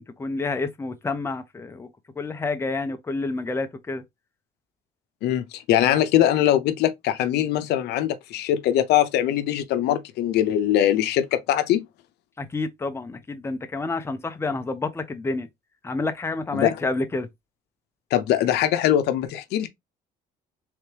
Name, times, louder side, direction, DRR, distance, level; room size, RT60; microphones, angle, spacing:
voice 1, 0.0-1.9 2.2-4.0 12.4-15.5 15.8-17.3, left 3 dB, 15° left, 0.7 m, -29 dB
voice 2, 5.2-11.9 16.5-16.7 18.1-19.7, left 11 dB, 80° left, 0.6 m, -22 dB
3.6 x 3.2 x 2.9 m
cardioid pair, 110°, 17 cm